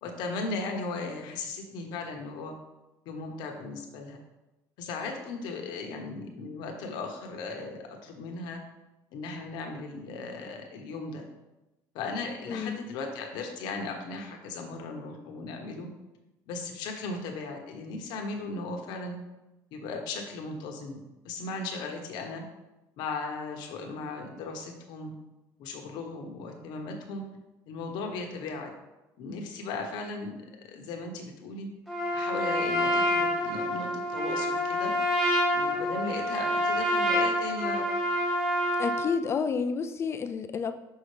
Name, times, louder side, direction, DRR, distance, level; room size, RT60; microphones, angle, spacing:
voice 1, 0.0-2.5 3.0-4.2 4.8-8.6 9.1-11.2 11.9-15.9 16.5-19.2 19.7-22.4 23.0-25.1 25.6-27.2 27.7-28.7 29.2-31.7 32.1-34.9 35.5-37.8, left 3 dB, 75° left, 3 dB, 1.1 m, -37 dB
voice 2, 12.5-12.8 38.8-40.7, left 5 dB, 35° left, 9 dB, 0.5 m, -30 dB
Trumpet, 31.9-39.1, equal, 5° right, 2.0 m, -27 dB
5.6 x 5.6 x 3.3 m, 1.0 s
cardioid pair, 110°, 7 cm